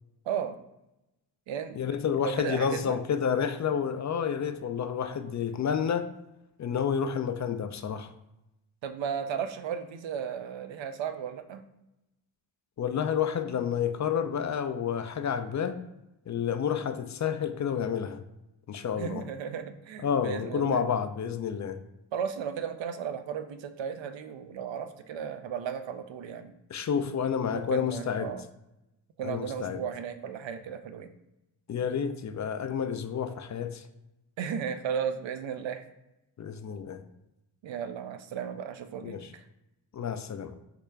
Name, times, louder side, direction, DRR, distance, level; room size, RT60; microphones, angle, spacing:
voice 1, 0.3-0.6 1.5-1.8 2.2-3.0 8.8-11.6 19.0-20.8 22.1-26.5 27.5-28.4 29.2-31.1 34.4-35.8 37.6-39.4, right 7 dB, 65° right, 9 dB, 0.6 m, -35 dB
voice 2, 1.8-6.1 6.6-8.1 12.8-15.8 16.3-18.2 18.7-19.2 20.0-21.8 26.7-28.3 29.2-29.8 31.7-33.8 36.4-37.0 39.0-39.3 39.9-40.6, left 7 dB, 40° left, 9 dB, 0.4 m, -30 dB
4.9 x 2.2 x 3.3 m, 0.90 s
supercardioid pair, 40°, 49 cm